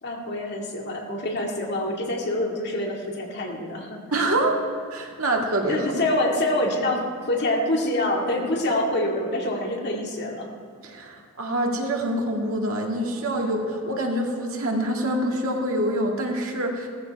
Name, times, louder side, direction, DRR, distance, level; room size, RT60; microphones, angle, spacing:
voice 1, 0.0-4.3 5.7-10.5, left 1 dB, 50° left, -1 dB, 2.1 m, -26 dB
voice 2, 4.1-4.6 4.9-5.8 10.8-16.9, right 1 dB, 65° right, 0 dB, 2.1 m, -25 dB
16.5 x 14.0 x 4.6 m, 2.3 s
head